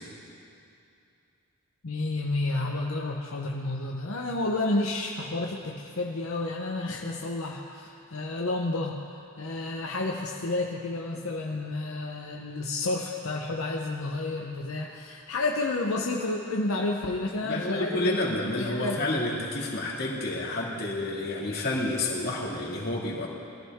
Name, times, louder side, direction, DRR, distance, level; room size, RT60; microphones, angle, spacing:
voice 1, 1.8-9.0 9.4-19.0, left 2 dB, 75° left, 0 dB, 0.9 m, -30 dB
voice 2, 17.4-23.3, left 2 dB, 45° left, -4 dB, 2.3 m, -29 dB
21.0 x 14.5 x 3.6 m, 2.6 s
head